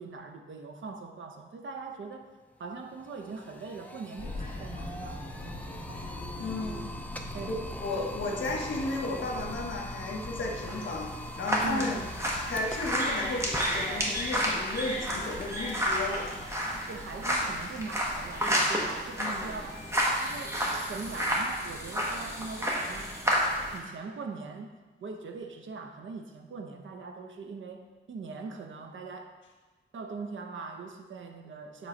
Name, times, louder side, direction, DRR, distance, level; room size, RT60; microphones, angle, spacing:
voice 1, 0.0-2.3 2.6-5.2 7.3-7.6 7.9-8.1 11.6-12.0 16.9-19.9 20.2-23.2 23.7-29.3 29.9-31.9, right 4 dB, 80° right, 5 dB, 0.7 m, -41 dB
sound 1, 2.1-2.2 2.5-21.6, equal, 10° left, 0.3 m, -45 dB
sound 2, 4.2-23.7, left 1 dB, 35° left, 1.7 m, -43 dB
voice 2, 6.4-6.9 7.5-12.0 12.4-16.3 19.2-19.5, left 2 dB, 75° left, -1 dB, 1.2 m, -34 dB
sound 3, 10.6-23.8, equal, 15° right, 0.9 m, -31 dB
7.2 x 3.1 x 5.2 m, 1.3 s
wide cardioid pair, 180°, 20 cm